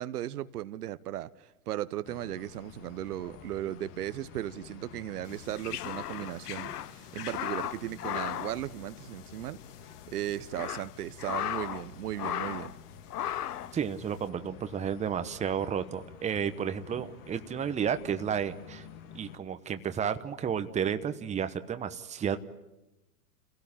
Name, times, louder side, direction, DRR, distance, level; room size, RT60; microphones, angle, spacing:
voice 1, 0.0-9.6 10.1-12.7, right 13 dB, 70° right, 0.9 m, -36 dB
sound 1, 2.0-19.4, left 8 dB, 40° left, 1.9 m, -50 dB
sound 2, 5.3-9.4 9.7-9.8 10.3-11.9 12.1-12.8 13.1-13.7, left 11 dB, 70° left, 1.0 m, -36 dB
voice 2, 13.7-18.9 19.1-22.4, right 8 dB, 15° right, 1.0 m, -32 dB
29.0 x 17.0 x 8.8 m
hypercardioid pair, 115°, 48 cm